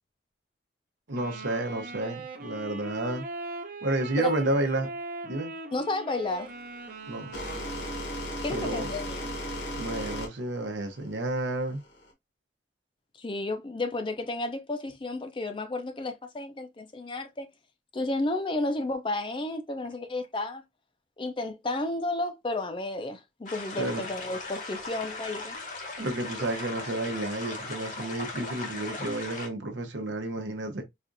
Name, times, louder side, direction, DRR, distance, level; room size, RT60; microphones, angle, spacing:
Wind instrument woodwind instrument, 1.1-8.3, right 3 dB, 50° right, 0.6 m, -41 dB
voice 1, 1.1-3.2 3.8-4.9 5.2-5.5 7.1-7.3 8.5-8.9 9.8-11.8 23.8-24.0 26.0-30.8, right 2 dB, 80° right, 0.8 m, -31 dB
voice 2, 5.7-6.5 8.4-9.3 13.2-17.5 17.9-20.6 21.2-25.6, left 2 dB, 25° left, 0.4 m, -32 dB
sound 1, 6.3-12.1, equal, 75° left, 1.5 m, -36 dB
sound 2, 23.5-29.5, left 3 dB, 45° left, 0.9 m, -38 dB
4.2 x 2.4 x 2.5 m
head